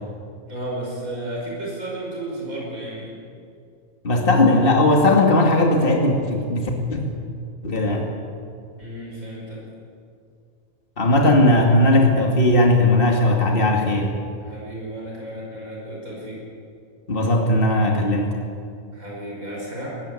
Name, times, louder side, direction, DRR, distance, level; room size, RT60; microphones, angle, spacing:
voice 1, 0.5-3.2 8.8-9.6 14.4-16.4 18.9-19.9, right 1 dB, 75° right, -4 dB, 5.9 m, -33 dB
voice 2, 4.0-7.0 7.6-8.1 11.0-14.1 17.1-18.3, left 1 dB, 40° left, 0 dB, 2.6 m, -18 dB
20.0 x 16.5 x 9.9 m, 2.4 s
omnidirectional pair, 1.5 m